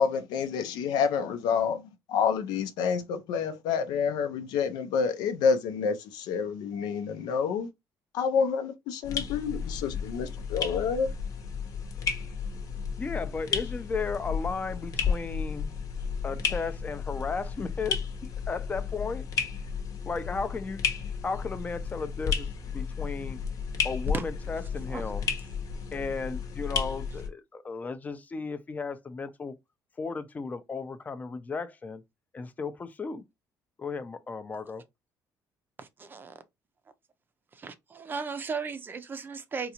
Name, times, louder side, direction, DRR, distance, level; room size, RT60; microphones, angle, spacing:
voice 1, 0.0-1.8 2.1-7.7 8.1-11.1, left 6 dB, 90° left, 0.6 m, -28 dB
sound 1, 9.0-27.3, left 6 dB, 55° left, 0.9 m, -33 dB
voice 2, 13.0-15.7 16.2-18.0 18.5-19.3 20.1-20.8 21.2-23.4 23.8-25.3 25.9-29.5 30.0-32.0 32.3-33.2 33.8-34.8, left 4 dB, 25° left, 0.5 m, -35 dB
voice 3, 35.8-36.4 37.5-39.7, right 5 dB, 30° right, 0.5 m, -36 dB
3.9 x 2.4 x 2.9 m
cardioid pair, 125°, 7 cm